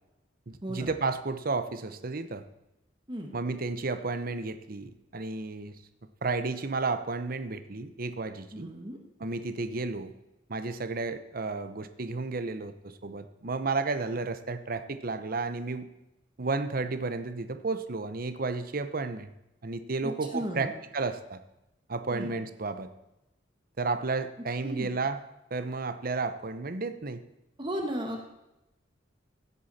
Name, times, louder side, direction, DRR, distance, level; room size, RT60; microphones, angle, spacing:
voice 1, 0.5-2.4 3.3-5.8 6.2-8.7 9.2-10.1 10.5-15.9 16.4-19.3 19.6-21.4 21.9-22.9 23.8-25.2 25.5-27.2, right 3 dB, 50° right, 10 dB, 0.9 m, -32 dB
voice 2, 8.5-9.0 20.0-20.7 22.1-22.3 24.6-24.9 27.6-28.4, right 1 dB, 25° right, 2 dB, 1.5 m, -35 dB
16.5 x 8.3 x 4.2 m, 0.92 s
head